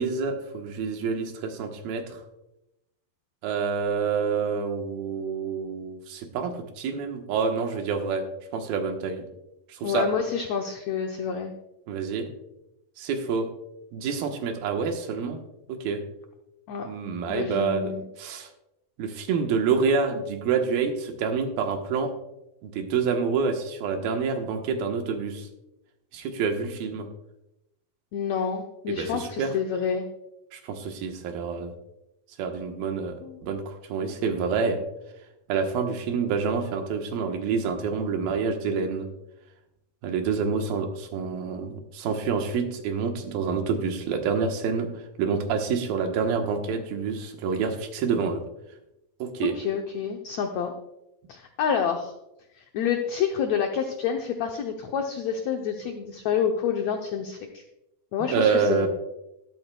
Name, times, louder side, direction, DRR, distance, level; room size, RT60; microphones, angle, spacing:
voice 1, 0.0-2.2 3.4-8.2 8.5-9.2 9.7-10.1 11.9-12.3 13.0-13.5 13.9-15.4 15.7-16.0 16.8-17.9 18.2-18.5 19.0-22.1 22.6-25.5 26.1-27.1 28.9-29.5 30.5-31.7 32.4-33.2 33.4-34.8 35.5-39.1 40.0-44.9 45.2-48.4 49.2-49.5 58.3-58.9, right 5 dB, 90° right, 4 dB, 3.0 m, -27 dB
voice 2, 9.8-11.5 16.7-16.9 17.3-18.0 28.1-30.0 33.2-33.4 49.4-50.7 51.3-52.1 52.5-57.6 58.1-58.9, left 7 dB, 85° left, 4 dB, 1.5 m, -28 dB
13.5 x 12.5 x 2.3 m, 0.88 s
omnidirectional pair, 4.1 m